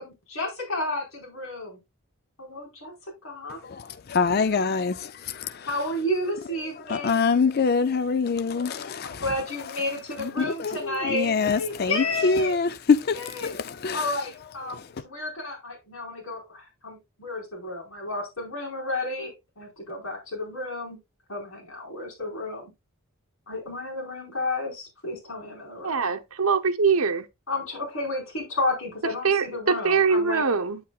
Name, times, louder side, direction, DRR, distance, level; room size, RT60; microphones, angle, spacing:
voice 1, 0.0-1.8 2.4-3.6 5.7-7.2 9.0-12.6 13.1-13.5 13.9-21.0 21.3-22.7 23.5-26.1 27.5-30.4, left 2 dB, 65° left, 4.6 m, -32 dB
voice 2, 3.5-5.8 6.9-9.4 10.2-14.3 14.7-14.9, left 5 dB, 45° left, 0.4 m, -25 dB
voice 3, 25.8-27.2 29.2-30.8, right 5 dB, 75° right, 0.9 m, -23 dB
8.7 x 8.4 x 2.4 m
head